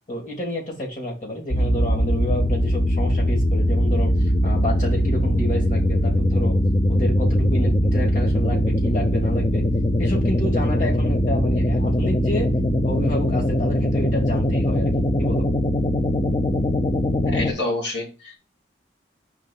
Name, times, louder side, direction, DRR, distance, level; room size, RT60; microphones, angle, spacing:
voice 1, 0.1-4.1 4.4-6.6 6.9-9.6 10.0-12.5 12.8-15.4, left 1 dB, 45° left, -2 dB, 2.7 m, -29 dB
sound 1, 1.5-17.5, equal, 30° left, 0.5 m, -21 dB
voice 2, 17.2-18.4, left 2 dB, 80° left, -2 dB, 2.6 m, -27 dB
5.0 x 3.6 x 5.6 m, 0.29 s
head